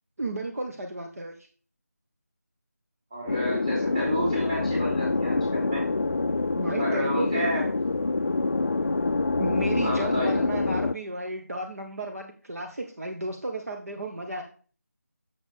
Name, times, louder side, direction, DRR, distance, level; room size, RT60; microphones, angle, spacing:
voice 1, 0.2-1.3 6.5-7.7 9.3-14.4, right 2 dB, 60° right, 3 dB, 1.2 m, -33 dB
voice 2, 3.1-5.9 6.8-7.6 9.8-10.4, equal, 20° right, -5 dB, 3.5 m, -30 dB
sound 1, 3.3-10.9, left 3 dB, 55° left, 0.4 m, -26 dB
7.5 x 7.1 x 3.4 m, 0.40 s
figure-of-eight pair, 175°, 9 cm